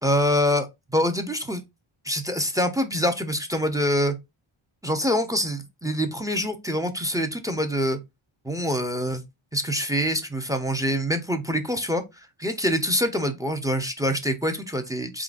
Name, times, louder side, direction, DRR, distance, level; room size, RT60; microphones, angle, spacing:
voice 1, 0.0-1.6 2.0-4.2 4.8-8.0 8.4-9.2 9.5-15.2, equal, 5° right, 0.6 m, -25 dB
3.9 x 3.8 x 2.4 m
wide cardioid pair, 110°, 50 cm